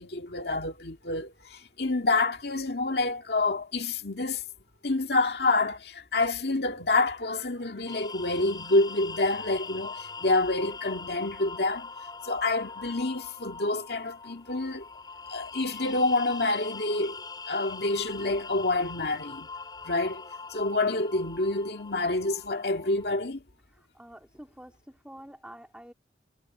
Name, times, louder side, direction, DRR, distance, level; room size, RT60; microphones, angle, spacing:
voice 1, 0.0-4.4 4.8-11.9 12.2-14.8 15.3-19.5 19.8-20.2 20.5-23.4, left 2 dB, 60° left, 2.2 m, -28 dB
sound 1, 7.9-23.2, left 4 dB, 25° left, 6.7 m, -42 dB
voice 2, 23.7-25.9, equal, 5° right, 3.0 m, -48 dB
head